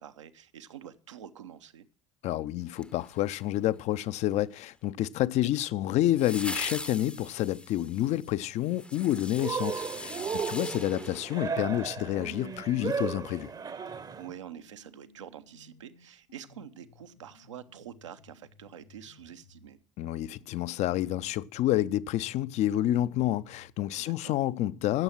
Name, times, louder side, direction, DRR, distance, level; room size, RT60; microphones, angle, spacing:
voice 1, 0.0-1.9 5.4-5.5 10.2-10.5 14.2-19.8 24.0-24.3, right 9 dB, 75° right, 0.8 m, -47 dB
voice 2, 2.2-13.5 20.0-25.0, left 14 dB, 45° left, 0.5 m, -29 dB
sound 1, 2.7-3.7 6.2-12.0 12.3-12.4, left 2 dB, 5° left, 0.7 m, -41 dB
Cheering, 9.4-14.3, right 6 dB, 25° right, 0.8 m, -35 dB
sound 2, 12.8-19.8 20.3-23.8, left 3 dB, 70° left, 1.2 m, -60 dB
15.5 x 7.1 x 5.9 m
figure-of-eight pair, 65°, 16 cm